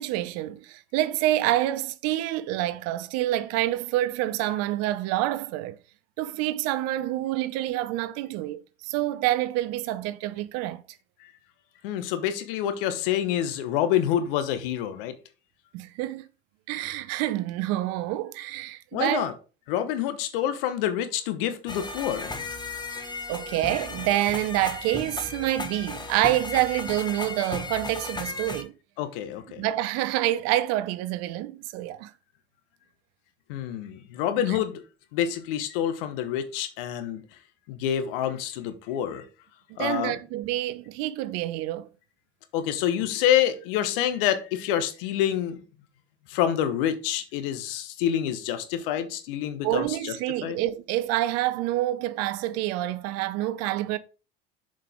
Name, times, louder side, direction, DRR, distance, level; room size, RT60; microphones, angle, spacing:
voice 1, 0.0-5.8 6.2-10.8 15.7-16.3 16.7-19.2 22.9-28.7 29.6-32.1 34.5-34.6 39.7-41.9 49.6-54.0, right 14 dB, 60° right, 0.7 m, -27 dB
voice 2, 11.8-15.1 18.9-19.3 19.7-22.3 29.0-29.6 33.5-34.8 35.1-37.2 37.7-39.2 39.8-40.2 42.5-45.6 46.3-50.1 50.4-50.6, left 10 dB, 70° left, 1.2 m, -27 dB
sound 1, 21.7-28.6, left 3 dB, 15° left, 1.3 m, -35 dB
7.3 x 5.2 x 3.6 m
hypercardioid pair, 65°, 29 cm